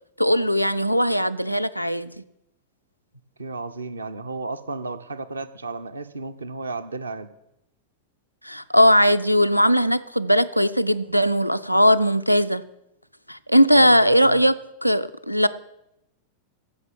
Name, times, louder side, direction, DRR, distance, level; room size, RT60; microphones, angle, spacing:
voice 1, 0.2-2.1 8.4-12.6 13.3-14.5 14.8-15.5, equal, 90° left, 0.4 m, -19 dB
voice 2, 3.4-7.3 13.7-14.4, right 3 dB, 75° right, 0.7 m, -33 dB
14.5 x 6.0 x 7.5 m
figure-of-eight pair, 90°, 0 cm